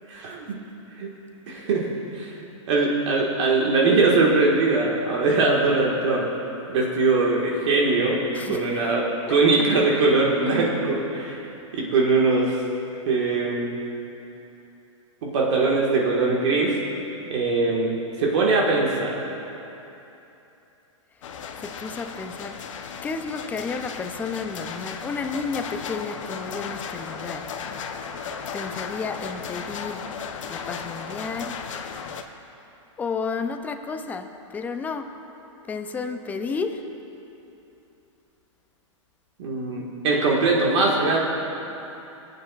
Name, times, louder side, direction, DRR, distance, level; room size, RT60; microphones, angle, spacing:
voice 1, 0.1-0.5 1.0-1.1 1.5-1.9 2.1-6.2 6.7-11.4 11.7-12.6 13.0-13.7 15.2-16.8 17.2-17.9 18.2-19.1 39.4-41.2, right 3 dB, 60° right, -3 dB, 1.6 m, -21 dB
voice 2, 8.3-8.9 9.3-9.4 21.6-22.6 23.0-27.5 28.5-30.0 30.5-31.6 33.0-35.1 35.7-36.8, left 4 dB, 10° left, 7 dB, 0.4 m, -32 dB
sound 1, 21.2-32.2, left 6 dB, 70° left, 0.7 m, -35 dB
20.5 x 8.7 x 2.4 m, 3.0 s
hypercardioid pair, 140°, 17 cm